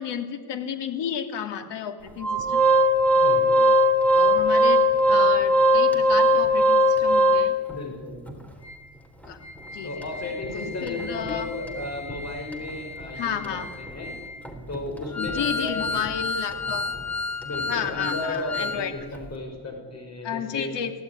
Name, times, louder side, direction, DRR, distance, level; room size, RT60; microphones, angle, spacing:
voice 1, 0.0-2.6 4.1-4.8 5.1-7.5 9.3-9.4 9.7-9.9 10.5-11.5 13.2-13.7 15.2-16.8 17.7-18.9 20.2-20.9, left 8 dB, 80° left, 7 dB, 2.8 m, -32 dB
Organ, 2.2-7.8 8.3-8.4 8.6-8.8 9.2-18.8 19.1-19.3, equal, 5° left, 3.7 m, -23 dB
voice 2, 3.2-3.7 7.7-8.2 9.8-14.2 14.7-16.0 16.6-17.0 17.4-20.8, left 2 dB, 40° left, 3 dB, 5.9 m, -34 dB
24.5 x 17.0 x 9.8 m, 1.5 s
cardioid pair, 120°, 42 cm